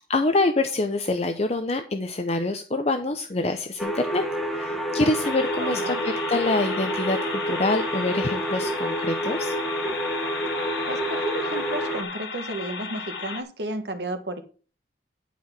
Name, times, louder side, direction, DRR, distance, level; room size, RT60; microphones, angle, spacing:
voice 1, 0.1-9.5, left 2 dB, 35° left, 6 dB, 0.7 m, -26 dB
sound 1, 3.8-12.0, right 1 dB, ahead, 1.1 m, -29 dB
sound 2, 5.2-13.4, left 5 dB, 85° left, 1.5 m, -34 dB
voice 2, 5.6-6.0 10.9-14.4, right 1 dB, 70° right, 7 dB, 1.5 m, -32 dB
11.5 x 4.8 x 5.9 m, 0.38 s
head